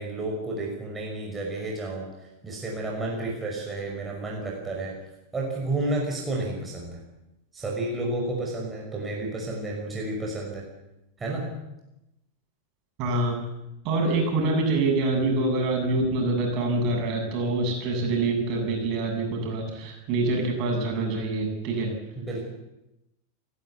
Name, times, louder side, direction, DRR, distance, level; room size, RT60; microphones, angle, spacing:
voice 1, 0.0-2.1 2.4-4.9 5.3-7.0 7.5-10.6 11.2-11.5 22.2-22.4, right 2 dB, 15° right, -2 dB, 5.6 m, -31 dB
voice 2, 13.0-13.4 13.8-21.9, right 2 dB, 40° right, 2 dB, 7.9 m, -25 dB
29.0 x 12.5 x 8.4 m, 0.92 s
figure-of-eight pair, 90°, 0 cm